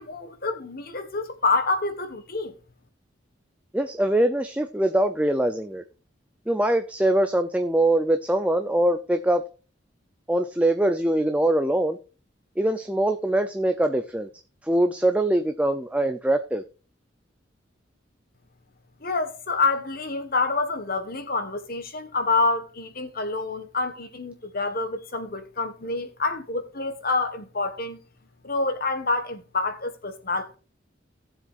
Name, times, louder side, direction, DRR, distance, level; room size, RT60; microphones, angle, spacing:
voice 1, 0.0-2.5 19.0-28.0 28.4-30.6, left 3 dB, 50° left, 1.5 m, -27 dB
voice 2, 3.7-5.8 6.5-9.4 10.3-12.0 12.6-14.3 14.6-16.6, right 1 dB, 5° right, 0.6 m, -23 dB
17.5 x 7.4 x 2.6 m
head